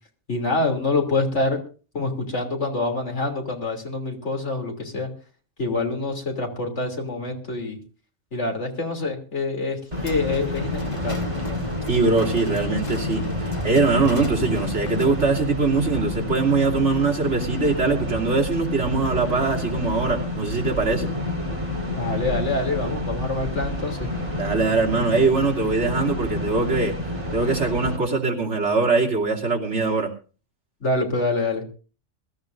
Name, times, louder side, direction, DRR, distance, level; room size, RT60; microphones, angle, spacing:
voice 1, 0.3-1.6 1.9-5.1 5.6-7.8 8.3-11.2 21.9-24.1 30.8-31.7, left 3 dB, 70° left, 2 dB, 3.4 m, -26 dB
sound 1, 9.9-28.0, left 1 dB, 25° right, 3.8 m, -29 dB
sound 2, 10.0-15.4, left 2 dB, 25° left, 1.7 m, -34 dB
voice 2, 11.9-21.1 24.4-27.0 27.3-30.1, right 4 dB, 65° right, -1 dB, 3.3 m, -22 dB
23.0 x 13.5 x 2.6 m, 0.37 s
omnidirectional pair, 1.3 m